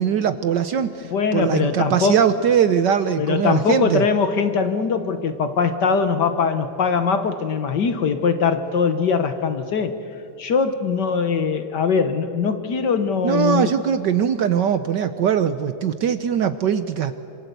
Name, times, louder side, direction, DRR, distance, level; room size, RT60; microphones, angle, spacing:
voice 1, 0.0-4.0 13.2-17.1, right 8 dB, 65° right, 11 dB, 1.2 m, -21 dB
voice 2, 1.1-2.2 3.2-9.9 10.4-13.7, left 5 dB, 55° left, 9 dB, 1.6 m, -21 dB
27.0 x 26.0 x 8.2 m, 2.6 s
omnidirectional pair, 2.4 m